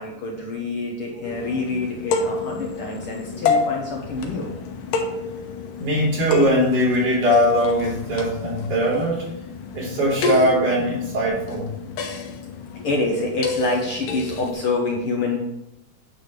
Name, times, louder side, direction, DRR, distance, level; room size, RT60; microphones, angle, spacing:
voice 1, 0.0-4.5 12.7-15.4, left 3 dB, 60° left, 0 dB, 1.6 m, -27 dB
sound 1, 1.2-14.5, left 4 dB, 80° left, 2.6 m, -29 dB
voice 2, 5.8-9.3 9.7-11.7, equal, 65° right, -7 dB, 5.4 m, -20 dB
9.5 x 4.2 x 6.6 m, 0.87 s
omnidirectional pair, 3.8 m